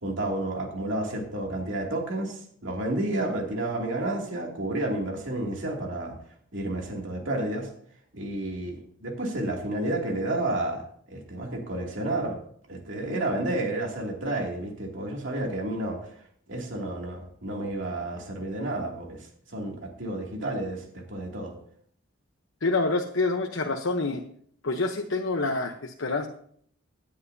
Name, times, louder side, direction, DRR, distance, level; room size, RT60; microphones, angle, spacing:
voice 1, 0.0-6.2 6.5-7.7 8.1-12.4 12.7-16.2 16.5-19.3 19.5-21.5, right 1 dB, 65° right, 0 dB, 2.7 m, -31 dB
voice 2, 22.6-24.2 24.6-26.3, left 3 dB, 75° left, 3 dB, 1.0 m, -27 dB
17.5 x 10.5 x 2.8 m, 0.62 s
head